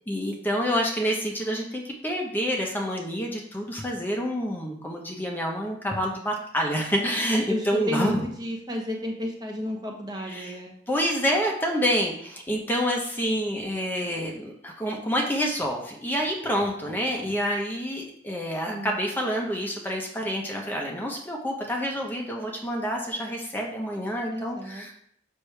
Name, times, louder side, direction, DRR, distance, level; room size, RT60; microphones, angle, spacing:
voice 1, 0.1-8.2 10.3-10.5 10.9-24.9, equal, 10° left, -1 dB, 1.0 m, -28 dB
voice 2, 7.1-10.7 18.7-19.0 24.3-24.9, left 1 dB, 25° right, 1 dB, 0.9 m, -32 dB
6.5 x 5.9 x 3.3 m, 0.64 s
head